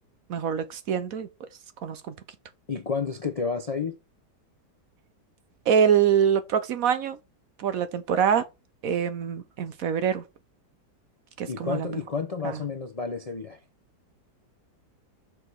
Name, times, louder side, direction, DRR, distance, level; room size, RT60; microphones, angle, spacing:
voice 1, 0.3-1.3 1.8-2.1 5.7-7.2 7.6-8.5 8.8-10.2 11.4-12.0 12.4-12.6, right 8 dB, 60° right, 1.1 m, -24 dB
voice 2, 2.7-4.0 11.5-13.6, left 5 dB, 45° left, 0.5 m, -30 dB
6.2 x 4.9 x 4.6 m
omnidirectional pair, 1.8 m